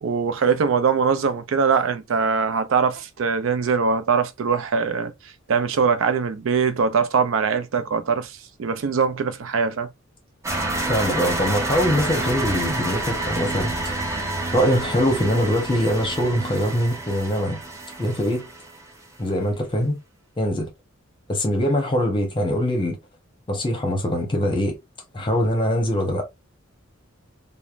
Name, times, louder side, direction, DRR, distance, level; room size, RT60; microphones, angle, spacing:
voice 1, 0.0-5.1 5.5-9.9, right 5 dB, 75° right, 0.4 m, -22 dB
sound 1, 10.4-18.9, right 2 dB, 15° right, 0.5 m, -28 dB
voice 2, 10.8-14.1 14.5-17.6 18.0-18.5 19.2-20.0 20.4-20.7 21.3-23.0 23.5-24.8 25.1-26.3, equal, 25° left, 0.8 m, -23 dB
3.1 x 2.0 x 2.4 m
head